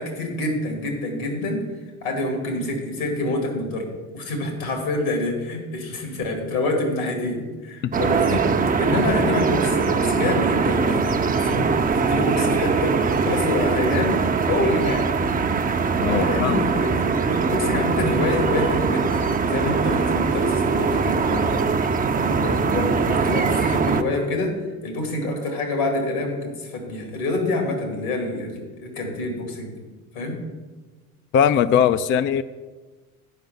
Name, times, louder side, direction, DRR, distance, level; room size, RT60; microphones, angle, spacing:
voice 1, 0.0-1.6 2.0-3.9 4.1-11.0 11.3-11.7 11.9-14.2 14.5-15.0 16.1-24.6 24.8-29.7 30.1-30.4, left 2 dB, 80° left, 3 dB, 2.7 m, -26 dB
sound 1, 7.9-24.0, right 5 dB, 20° right, 0.6 m, -22 dB
voice 2, 16.0-16.8 31.3-32.4, left 8 dB, 30° left, 12 dB, 0.4 m, -20 dB
9.4 x 5.4 x 7.1 m, 1.3 s
hypercardioid pair, 70°, 43 cm